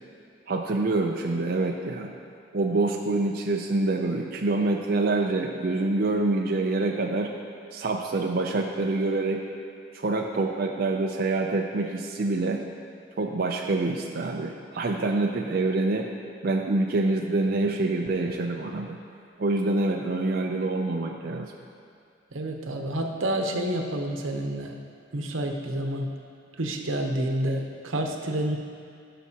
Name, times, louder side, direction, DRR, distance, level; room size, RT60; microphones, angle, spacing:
voice 1, 0.5-2.1 2.5-7.3 7.7-9.4 9.9-12.6 13.2-16.1 16.4-19.0 19.4-21.5, right 2 dB, 50° right, 1 dB, 0.4 m, -26 dB
voice 2, 22.3-24.7 25.1-26.1 26.6-28.6, right 1 dB, 85° right, 3 dB, 0.9 m, -29 dB
15.5 x 5.9 x 2.8 m, 2.3 s
head